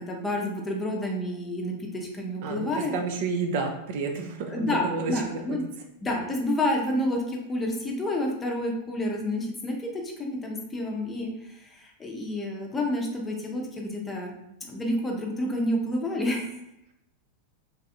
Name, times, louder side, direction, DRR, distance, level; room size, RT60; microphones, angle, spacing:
voice 1, 0.0-2.9 4.5-5.6 6.0-14.3 14.7-16.5, left 1 dB, 15° left, 0 dB, 0.6 m, -29 dB
voice 2, 2.4-5.6, right 4 dB, 50° right, 4 dB, 0.4 m, -30 dB
3.2 x 2.4 x 2.6 m, 0.84 s
figure-of-eight pair, 90°, 0 cm